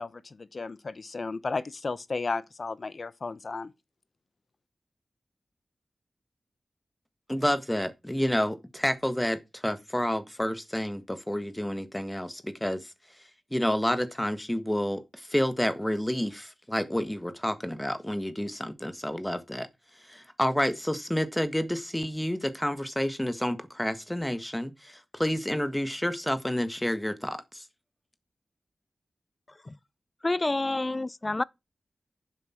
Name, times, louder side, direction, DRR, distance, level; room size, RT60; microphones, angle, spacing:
voice 1, 0.0-3.7, left 3 dB, 55° left, 0.8 m, -34 dB
voice 2, 7.3-12.9 13.5-19.7 20.1-27.6, equal, 10° left, 1.5 m, -29 dB
voice 3, 30.2-31.4, left 2 dB, 30° left, 0.5 m, -28 dB
10.5 x 7.5 x 4.4 m
wide cardioid pair, 65°, 0 cm